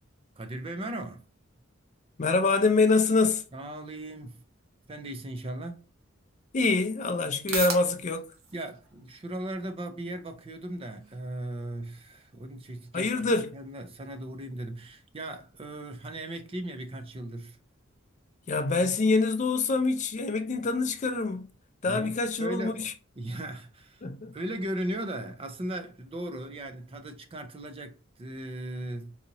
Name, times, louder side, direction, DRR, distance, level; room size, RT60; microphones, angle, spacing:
voice 1, 0.4-1.2 3.5-4.4 4.9-5.8 8.5-17.6 18.7-18.8 21.8-22.9 23.2-24.0 24.3-29.2, right 1 dB, 30° right, 0.5 m, -37 dB
voice 2, 2.2-3.4 6.5-8.3 12.9-13.5 18.5-21.5 21.8-22.9 24.0-24.3, left 3 dB, 35° left, 0.5 m, -25 dB
sound 1, 6.0-23.0, right 5 dB, 90° right, 1.1 m, -46 dB
4.0 x 2.8 x 2.6 m
head